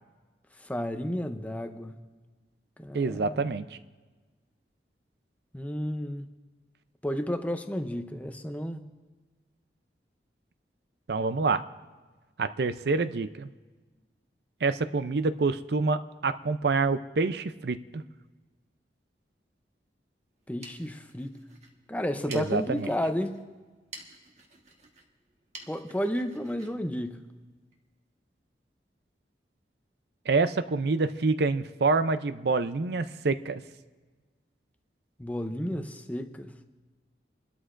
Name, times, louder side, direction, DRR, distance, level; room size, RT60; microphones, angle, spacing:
voice 1, 0.6-2.0 2.8-3.4 5.5-6.3 7.0-8.8 20.5-21.4 21.9-23.4 25.7-27.3 35.2-36.6, equal, 10° left, 7 dB, 0.6 m, -32 dB
voice 2, 2.9-3.8 11.1-11.6 12.4-13.5 14.6-18.0 22.3-22.9 30.3-33.6 35.8-35.9, right 3 dB, 65° right, 12 dB, 0.5 m, -27 dB
sound 1, 20.3-27.8, right 3 dB, 40° right, 1.5 m, -51 dB
28.0 x 12.5 x 2.5 m, 1.3 s
head